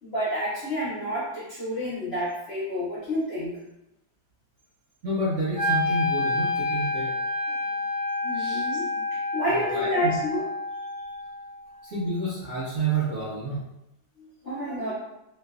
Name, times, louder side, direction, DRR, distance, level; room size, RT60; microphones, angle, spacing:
voice 1, 0.0-3.5 7.5-7.6 8.2-8.9 9.3-10.4 14.2-14.9, equal, 50° left, -10 dB, 0.8 m, -29 dB
voice 2, 5.0-7.1 8.3-8.6 9.5-9.9 11.9-13.6, right 2 dB, 55° right, -9 dB, 0.9 m, -29 dB
Wind instrument woodwind instrument, 5.5-11.6, left 2 dB, 20° left, 0.4 m, -28 dB
3.2 x 3.0 x 2.3 m, 0.88 s
omnidirectional pair, 2.1 m